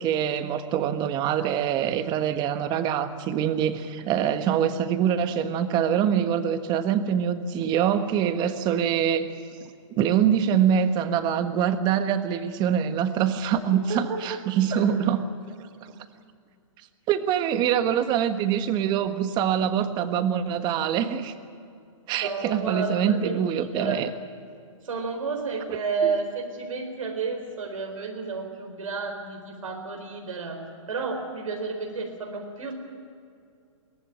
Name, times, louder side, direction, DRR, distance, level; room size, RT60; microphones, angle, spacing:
voice 1, 0.0-9.3 9.6-9.7 10.0-15.2 15.8-15.9 17.1-21.3 22.1-24.1 26.0-26.1, right 9 dB, 25° right, 10 dB, 1.4 m, -24 dB
voice 2, 13.7-14.4 14.7-14.8 22.2-23.4 23.7-24.0 24.8-30.6 30.9-32.7, right 4 dB, 90° right, 2 dB, 4.0 m, -31 dB
22.5 x 17.0 x 9.1 m, 2.4 s
hypercardioid pair, 145°, 17 cm